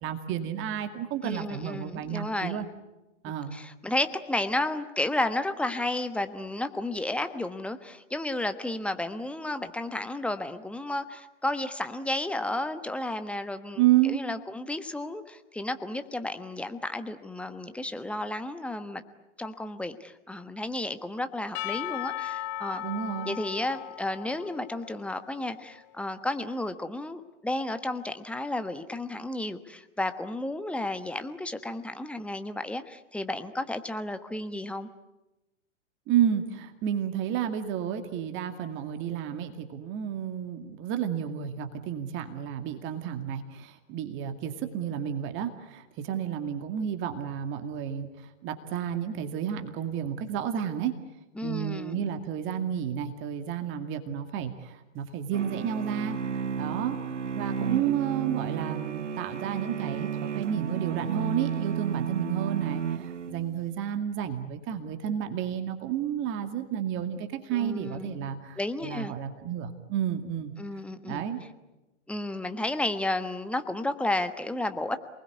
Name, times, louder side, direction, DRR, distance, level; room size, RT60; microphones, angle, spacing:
voice 1, 0.0-2.7 3.2-3.6 13.8-14.2 22.8-23.4 36.1-50.9 51.4-70.5 71.0-71.4, right 10 dB, 35° right, 7 dB, 2.3 m, -31 dB
voice 2, 1.2-2.6 3.5-19.0 19.4-22.8 23.2-34.9 51.4-52.1 67.5-68.2 68.6-69.1 70.6-71.2 72.1-75.0, left 1 dB, 5° left, 9 dB, 1.3 m, -32 dB
Percussion / Church bell, 21.5-25.9, left 13 dB, 30° left, 0.8 m, -37 dB
sound 1, 55.3-63.6, right 7 dB, 80° right, 0.8 m, -32 dB
28.0 x 20.5 x 9.5 m, 1.0 s
figure-of-eight pair, 105°, 36 cm